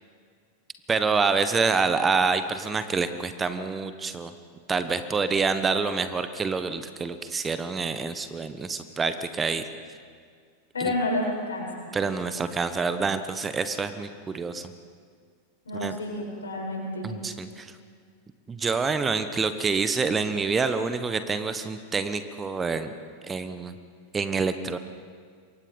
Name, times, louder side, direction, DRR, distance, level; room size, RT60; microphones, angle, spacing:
voice 1, 0.9-4.3 4.7-9.6 10.8-10.9 11.9-14.7 15.7-15.9 17.0-17.7 18.5-22.9 23.2-23.7 24.1-24.8, right 4 dB, 15° right, 11 dB, 1.2 m, -27 dB
voice 2, 10.7-11.9 15.6-17.1, left 1 dB, 70° left, -2 dB, 7.7 m, -30 dB
26.5 x 24.0 x 5.3 m, 2.1 s
figure-of-eight pair, 90°, 0 cm